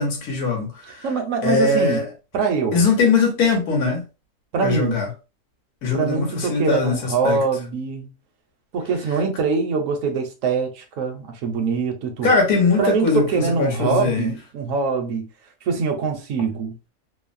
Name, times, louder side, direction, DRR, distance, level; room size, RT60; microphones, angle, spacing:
voice 1, 0.0-1.1 1.4-2.1 2.7-4.0 4.6-5.1 5.8-7.4 12.2-14.3, left 4 dB, 75° left, 1.4 m, -21 dB
voice 2, 1.0-2.0 2.3-2.8 4.5-5.0 5.9-8.1 8.7-12.3 12.8-15.3 15.6-16.8, right 5 dB, 65° right, 1.0 m, -23 dB
3.1 x 2.0 x 2.5 m
omnidirectional pair, 1.6 m